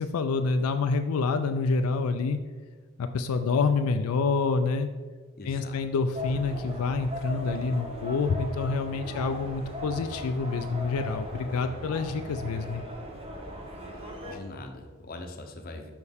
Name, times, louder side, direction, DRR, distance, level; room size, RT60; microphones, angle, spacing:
voice 1, 0.0-2.4 3.0-4.9 5.5-12.8, left 4 dB, 85° left, 7 dB, 0.4 m, -27 dB
voice 2, 5.4-5.8 13.9-15.9, left 2 dB, 45° left, 4 dB, 0.7 m, -42 dB
sound 1, 6.1-14.3, left 1 dB, 25° right, 0.8 m, -38 dB
6.4 x 5.5 x 3.5 m, 1.4 s
head